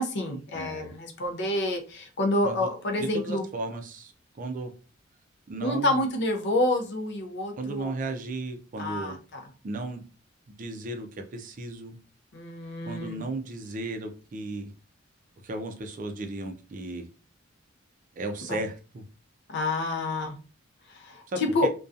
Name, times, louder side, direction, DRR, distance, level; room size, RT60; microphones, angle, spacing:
voice 1, 0.0-3.4 5.6-7.9 8.8-9.4 12.3-13.2 18.5-18.6 19.5-20.4 20.9-21.7, left 1 dB, 60° left, 0.5 m, -28 dB
voice 2, 0.5-0.9 2.4-2.7 3.0-4.7 5.5-6.0 7.6-9.2 9.6-10.0 10.6-12.0 12.8-14.7 15.4-17.1 18.2-19.0 21.3-21.7, right 2 dB, 40° right, 0.4 m, -35 dB
2.6 x 2.2 x 2.3 m
head